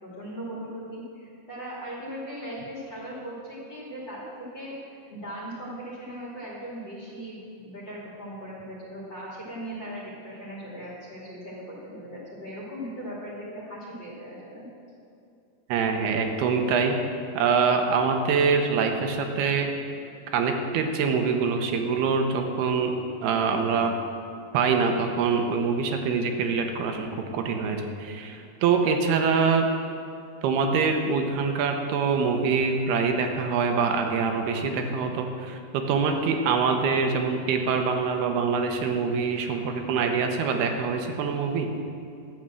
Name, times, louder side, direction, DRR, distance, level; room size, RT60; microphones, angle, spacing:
voice 1, 0.0-14.6, equal, 30° left, -4 dB, 2.9 m, -38 dB
voice 2, 15.7-17.0 17.4-19.7 20.3-22.9 23.2-23.9 24.5-29.6 30.4-41.7, right 5 dB, 85° right, 4 dB, 2.9 m, -24 dB
12.0 x 7.5 x 7.5 m, 2.5 s
omnidirectional pair, 4.5 m